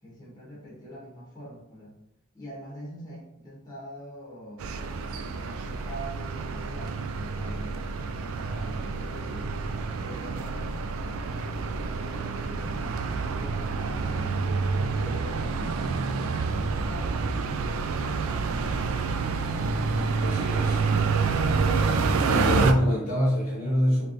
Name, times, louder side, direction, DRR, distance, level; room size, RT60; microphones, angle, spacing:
voice 1, 0.0-1.9 2.3-4.7 5.2-9.6 9.9-14.5 14.9-17.6, equal, 20° left, -6 dB, 1.2 m, -44 dB
sound 1, 4.6-22.7, right 4 dB, 75° right, 0.3 m, -28 dB
voice 2, 20.2-20.8 21.7-21.9 22.2-24.1, equal, 40° left, -6 dB, 1.1 m, -26 dB
3.3 x 3.2 x 2.6 m, 0.79 s
head